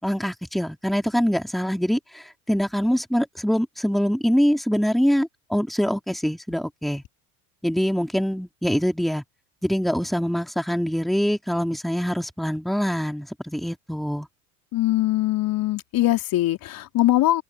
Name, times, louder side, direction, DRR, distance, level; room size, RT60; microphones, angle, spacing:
voice 1, 0.0-7.0 7.6-9.2 9.6-14.3, equal, ahead, 3.4 m, -24 dB
voice 2, 14.7-17.4, left 15 dB, 50° left, 3.7 m, -22 dB
hypercardioid pair, 75°, 43 cm